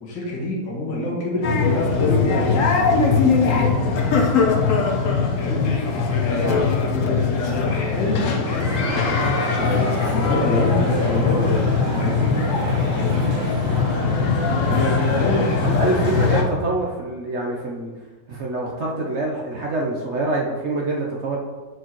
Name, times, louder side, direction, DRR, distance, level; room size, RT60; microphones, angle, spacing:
voice 1, 0.0-4.0 5.4-5.7 5.9-6.6 6.9-12.4 12.9-13.2 14.7-16.0, left 1 dB, 85° left, -3 dB, 2.2 m, -28 dB
sound 1, 1.4-16.4, left 4 dB, 55° left, 1.0 m, -21 dB
sound 2, 8.4-16.4, right 1 dB, 80° right, 2.2 m, -32 dB
voice 2, 15.6-17.9 18.3-21.4, right 2 dB, 55° right, -1 dB, 0.8 m, -25 dB
9.2 x 4.7 x 3.0 m, 1.3 s
omnidirectional pair, 1.9 m